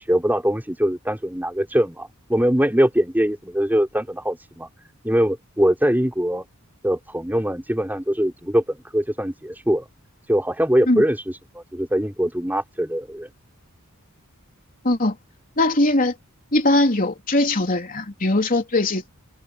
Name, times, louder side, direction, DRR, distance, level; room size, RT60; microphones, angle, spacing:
voice 1, 0.0-4.7 5.0-6.4 6.8-9.9 10.3-11.2 11.5-13.3, equal, 10° right, 5.4 m, -22 dB
voice 2, 14.8-15.1 15.6-16.1 16.5-19.1, left 2 dB, 40° left, 3.4 m, -20 dB
head